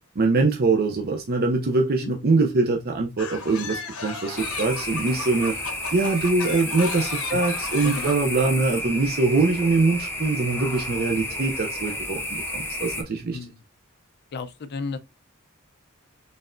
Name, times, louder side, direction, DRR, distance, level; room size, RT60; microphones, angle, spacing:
voice 1, 0.2-5.5 5.9-13.4, right 3 dB, 45° right, 0.5 m, -23 dB
sound 1, 3.2-8.2, left 5 dB, 80° left, 1.0 m, -35 dB
sound 2, 4.4-13.0, left 1 dB, 10° left, 0.8 m, -31 dB
voice 2, 14.3-15.0, left 4 dB, 50° left, 0.5 m, -33 dB
4.1 x 3.3 x 2.5 m
head